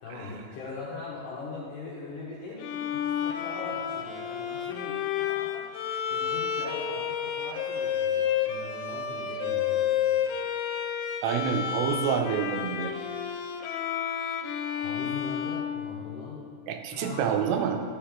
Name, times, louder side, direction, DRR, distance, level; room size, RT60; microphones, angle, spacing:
voice 1, 0.0-10.2 14.7-16.4 16.9-17.3, left 3 dB, 70° left, -5 dB, 2.1 m, -41 dB
Bowed string instrument, 2.6-16.5, left 9 dB, 85° left, 2.2 m, -31 dB
voice 2, 11.2-12.9 16.7-17.8, right 7 dB, 90° right, 4 dB, 3.0 m, -27 dB
12.0 x 5.4 x 3.6 m, 2.2 s
omnidirectional pair, 5.0 m